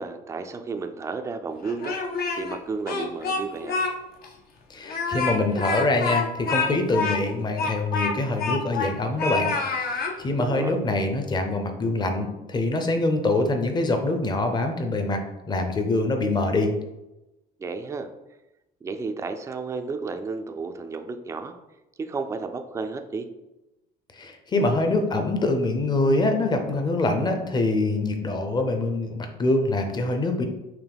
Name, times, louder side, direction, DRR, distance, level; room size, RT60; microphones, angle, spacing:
voice 1, 0.0-2.0 2.4-3.8 10.4-10.7 17.6-18.1 18.8-21.5 22.0-23.3, right 4 dB, 15° right, 7 dB, 0.3 m, -32 dB
Speech, 1.6-2.6 2.9-3.9 4.2-4.3 4.8-8.9 9.2-10.1, left 4 dB, 65° left, 0.8 m, -27 dB
voice 2, 4.7-9.5 9.8-15.2 15.5-16.7 24.2-30.4, left 2 dB, 25° left, 5 dB, 0.6 m, -24 dB
5.7 x 2.2 x 3.5 m, 0.98 s
cardioid pair, 110°, 17 cm